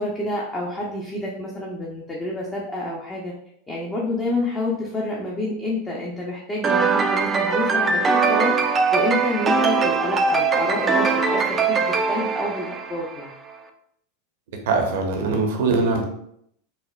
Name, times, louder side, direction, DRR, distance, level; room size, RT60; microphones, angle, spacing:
voice 1, 0.0-3.3 3.7-13.3, left 2 dB, 20° left, -3 dB, 0.6 m, -28 dB
sound 1, 6.6-13.3, right 4 dB, 25° right, 0.4 m, -21 dB
voice 2, 14.7-16.0, right 3 dB, 65° right, 3 dB, 0.7 m, -21 dB
4.2 x 2.1 x 2.2 m, 0.72 s
hypercardioid pair, 95°, 0 cm